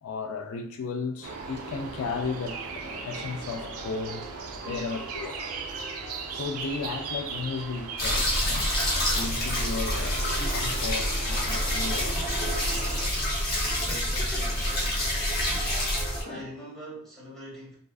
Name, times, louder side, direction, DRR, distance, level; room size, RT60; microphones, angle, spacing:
voice 1, 0.0-5.5 6.3-8.7 9.1-10.3 10.5-12.4 13.0-13.2 16.3-16.4, left 4 dB, 70° left, 0.3 m, -35 dB
sound 1, 1.2-16.5, right 1 dB, 45° right, 0.8 m, -47 dB
sound 2, 1.2-13.1, right 4 dB, 80° right, 0.4 m, -38 dB
sound 3, 8.0-16.2, left 1 dB, 45° left, 0.7 m, -27 dB
voice 2, 13.6-14.8 16.3-17.8, right 1 dB, ahead, 1.1 m, -43 dB
2.4 x 2.4 x 2.3 m
head